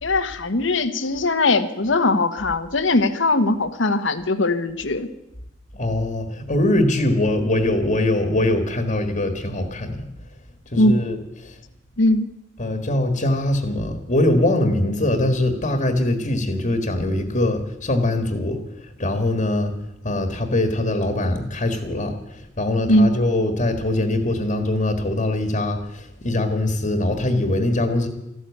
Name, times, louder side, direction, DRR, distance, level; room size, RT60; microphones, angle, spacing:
voice 1, 0.0-5.1 10.8-10.9 12.0-12.3 22.9-23.1, left 2 dB, 80° left, 8 dB, 1.2 m, -20 dB
voice 2, 5.8-10.0 10.7-11.2 12.6-18.6 19.0-19.7 20.0-22.1 22.6-28.1, left 1 dB, 40° left, 6 dB, 1.6 m, -22 dB
14.0 x 12.0 x 8.2 m, 0.86 s
head